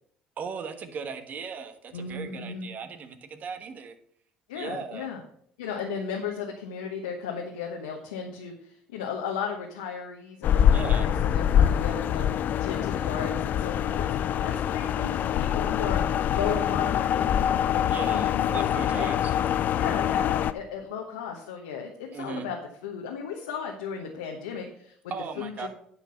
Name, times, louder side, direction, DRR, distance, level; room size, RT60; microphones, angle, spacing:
voice 1, 0.4-3.9 4.5-5.1 10.7-11.1 17.9-19.8 22.1-22.5 25.1-25.7, right 5 dB, 50° right, 9 dB, 1.3 m, -38 dB
voice 2, 1.9-2.7 4.5-5.2 5.6-12.3 12.6-18.7 19.0-19.1 19.7-22.6 22.8-25.0 25.4-25.7, left 6 dB, 85° left, 1 dB, 1.1 m, -35 dB
sound 1, 10.4-20.5, left 9 dB, 55° left, 0.5 m, -24 dB
9.9 x 5.9 x 5.6 m, 0.64 s
hypercardioid pair, 65°, 4 cm